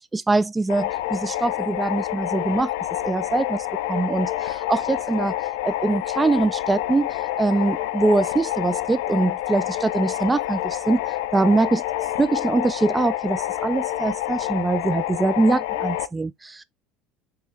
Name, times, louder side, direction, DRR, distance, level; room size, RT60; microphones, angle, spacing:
voice 1, 0.1-2.7 3.0-5.3 5.6-7.1 7.4-11.0 11.3-11.8 12.2-16.6, right 3 dB, 15° right, 0.3 m, -23 dB
sound 1, 0.7-16.1, left 14 dB, 85° left, 0.3 m, -28 dB
3.8 x 3.0 x 2.7 m
supercardioid pair, 105°, 0 cm